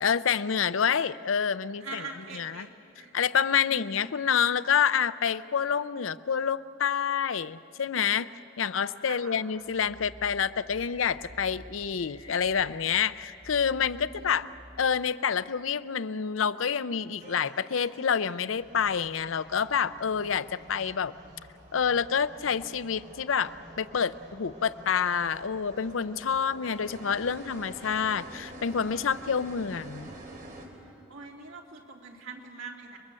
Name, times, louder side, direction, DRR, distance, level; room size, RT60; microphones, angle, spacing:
voice 1, 0.0-2.1 2.3-2.7 3.1-8.3 8.6-14.5 14.8-21.1 21.7-30.1, left 7 dB, 90° left, 15 dB, 0.6 m, -28 dB
voice 2, 1.8-3.1 3.7-3.8 9.0-9.4 13.8-14.4 31.1-33.0, right 3 dB, 85° right, -1 dB, 3.1 m, -43 dB
sound 1, 9.5-14.9, left 1 dB, 30° left, 3.7 m, -49 dB
sound 2, 17.2-30.7, right 1 dB, 45° right, 3.5 m, -48 dB
30.0 x 21.0 x 7.6 m, 2.8 s
head